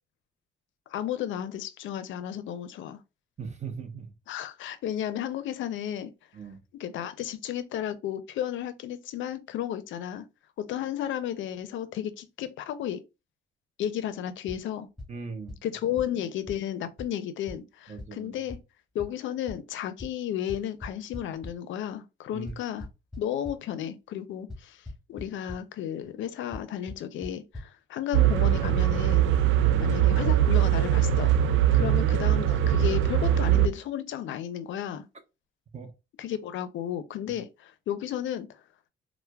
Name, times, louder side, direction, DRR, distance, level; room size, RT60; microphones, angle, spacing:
voice 1, 0.9-3.0 4.3-6.1 6.8-10.2 10.6-13.0 13.8-14.9 15.6-18.6 18.9-22.9 23.2-29.3 29.8-31.3 31.7-35.0 36.2-38.6, left 10 dB, 75° left, 0.5 m, -33 dB
voice 2, 3.4-4.1 6.3-6.6 15.1-15.6 17.9-18.3 22.3-22.6 29.5-29.9 31.7-32.0 35.7-35.9, right 5 dB, 35° right, 0.8 m, -39 dB
sound 1, 14.5-14.6 15.0-15.1 15.5-15.6 16.0-16.1 16.5-16.6 17.0-17.1 17.5-17.6 18.0-18.1 18.5-18.6 19.0-19.1 19.5-19.6 20.0-20.1 20.5-21.5 22.5-23.6 24.5-24.6 24.9-25.2 25.5-25.6 26.5-26.6 26.9-27.0 27.2-27.3 27.5-27.6, left 2 dB, ahead, 1.7 m, -38 dB
sound 2, 28.1-33.7, right 11 dB, 75° right, 0.4 m, -22 dB
4.3 x 2.1 x 2.2 m
cardioid pair, 90°, 20 cm